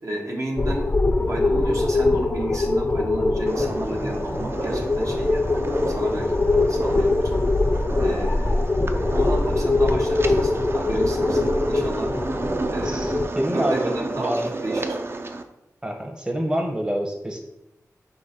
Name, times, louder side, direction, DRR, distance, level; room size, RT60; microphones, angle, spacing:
voice 1, 0.0-7.3 8.0-8.8 9.1-12.1 12.7-14.3 14.6-15.0, right 1 dB, 60° right, -1 dB, 0.8 m, -32 dB
sound 1, 0.6-13.3, left 2 dB, 30° left, 0.4 m, -22 dB
sound 2, 3.5-15.4, right 3 dB, 40° right, 0.4 m, -31 dB
voice 2, 12.8-14.5 15.8-17.4, equal, 15° right, 2 dB, 0.7 m, -27 dB
3.7 x 3.0 x 4.2 m, 0.87 s
cardioid pair, 50°, 6 cm